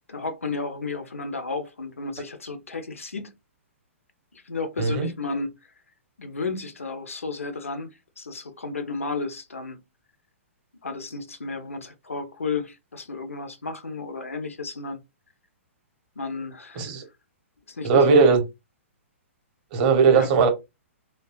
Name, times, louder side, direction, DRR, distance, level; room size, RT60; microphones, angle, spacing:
voice 1, 0.1-3.3 4.3-5.5 6.2-9.8 10.8-15.0 16.2-16.9 17.7-18.3 20.1-20.3, left 4 dB, 75° left, 0.6 m, -33 dB
voice 2, 4.8-5.1 16.8-17.0 17.8-18.4 19.7-20.5, right 5 dB, 35° right, 0.7 m, -18 dB
2.6 x 2.3 x 2.3 m
figure-of-eight pair, 115°, 7 cm